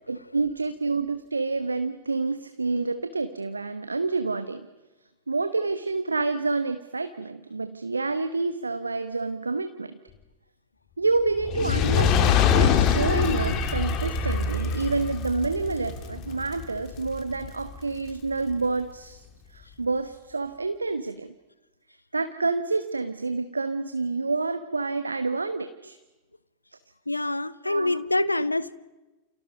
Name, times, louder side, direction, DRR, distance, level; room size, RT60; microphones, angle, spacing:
voice 1, 0.1-4.7 5.3-10.0 11.0-21.3 22.1-26.0 27.6-28.3, right 3 dB, 80° right, 1.1 m, -28 dB
Fire, 11.4-17.8 18.5-18.6, left 8 dB, 35° left, 2.7 m, -24 dB
sound 1, 11.4-17.0 17.4-17.5, right 3 dB, 10° right, 4.2 m, -34 dB
voice 2, 27.1-28.7, left 2 dB, 85° left, 0.8 m, -26 dB
29.5 x 28.0 x 5.4 m
figure-of-eight pair, 90°, 0 cm